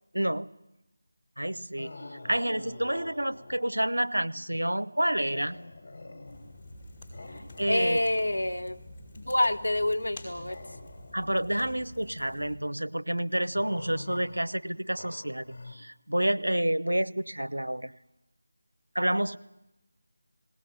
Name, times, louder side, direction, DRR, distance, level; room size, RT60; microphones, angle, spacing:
voice 1, 0.1-0.5 1.4-2.0 2.2-5.6 7.6-8.0 11.1-17.9 18.9-19.4, right 1 dB, 85° right, 14 dB, 0.7 m, -29 dB
sound 1, 1.7-3.8 5.2-6.7 7.1-8.8 10.3-11.4 13.5-15.8, left 2 dB, 45° left, 3.7 m, -46 dB
sound 2, 6.3-12.6, left 1 dB, 20° left, 5.4 m, -48 dB
voice 2, 7.7-8.8 9.2-10.6, left 1 dB, 75° left, 6 dB, 1.3 m, -27 dB
19.0 x 18.0 x 9.5 m, 0.94 s
figure-of-eight pair, 165°, 0 cm